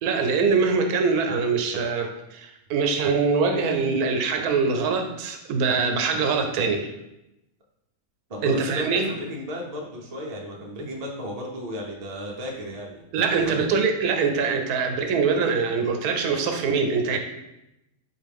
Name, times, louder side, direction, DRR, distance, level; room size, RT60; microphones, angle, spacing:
voice 1, 0.0-6.9 8.4-9.1 13.1-17.2, right 5 dB, 85° right, 5 dB, 1.1 m, -23 dB
voice 2, 8.3-13.0 13.4-13.7, equal, 50° right, -2 dB, 0.5 m, -34 dB
4.3 x 2.5 x 3.4 m, 0.90 s
omnidirectional pair, 1.6 m